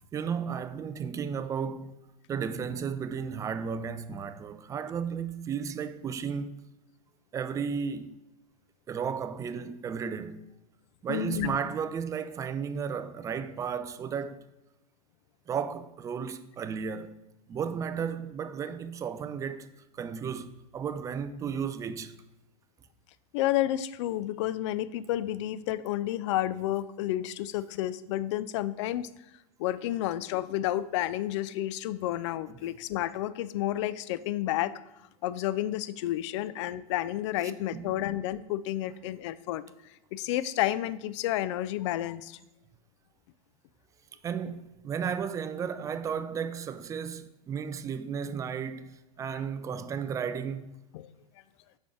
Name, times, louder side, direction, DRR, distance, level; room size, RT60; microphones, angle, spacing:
voice 1, 0.1-2.0 2.3-6.6 7.3-8.1 8.9-10.5 11.0-14.4 15.5-17.2 17.5-19.7 20.0-22.1 37.7-38.0 44.2-50.7, right 7 dB, 15° right, 0.4 m, -34 dB
voice 2, 11.1-11.6 23.3-29.1 29.6-34.7 35.2-39.6 40.1-42.4 50.9-51.1, left 13 dB, 50° left, 0.4 m, -30 dB
6.6 x 5.2 x 3.8 m
figure-of-eight pair, 100°, 20 cm